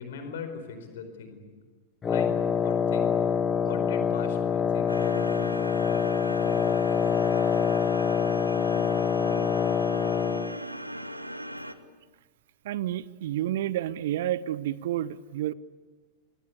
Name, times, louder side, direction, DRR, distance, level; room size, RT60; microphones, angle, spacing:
voice 1, 0.0-1.5 2.0-2.3 2.6-3.2 3.6-5.7, left 5 dB, 60° left, 8 dB, 4.7 m, -39 dB
Wind instrument woodwind instrument, 2.0-10.6, left 7 dB, 20° left, 0.8 m, -25 dB
sound 1, 4.9-11.7, right 1 dB, 85° right, 1.2 m, -38 dB
voice 2, 12.6-15.5, right 12 dB, 55° right, 21 dB, 0.7 m, -30 dB
26.5 x 21.0 x 8.4 m, 1.4 s
figure-of-eight pair, 90°, 0 cm